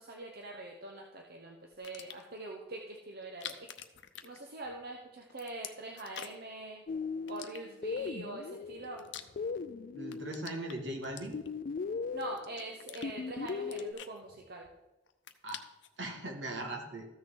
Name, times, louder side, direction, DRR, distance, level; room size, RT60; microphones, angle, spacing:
voice 1, 0.0-3.7 4.2-6.8 7.3-9.0 12.1-14.7, right 2 dB, 60° right, 1 dB, 0.9 m, -44 dB
sound 1, 1.7-2.4 3.2-4.9 5.2-6.6 7.3-8.1 8.6-9.7 10.0-11.7 12.2-13.1 13.4-14.8 15.1-16.0, left 10 dB, 75° left, 0.7 m, -47 dB
sound 2, 6.9-10.6 11.3-13.9, left 5 dB, 50° left, 0.4 m, -38 dB
voice 2, 9.9-11.4 15.4-15.6 16.0-17.1, right 1 dB, 75° right, 1 dB, 1.8 m, -39 dB
14.0 x 6.3 x 3.8 m, 1.0 s
head